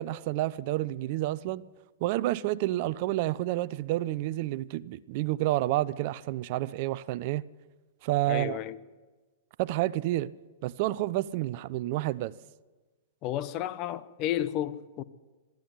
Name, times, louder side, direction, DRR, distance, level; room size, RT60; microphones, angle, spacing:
voice 1, 0.0-1.6 2.0-7.4 8.0-8.6 9.6-10.3 10.6-12.3, right 16 dB, 50° right, 0.6 m, -29 dB
voice 2, 8.3-8.8 13.2-15.0, left 12 dB, 40° left, 1.1 m, -32 dB
26.0 x 12.0 x 9.7 m
hypercardioid pair, 110°, 0 cm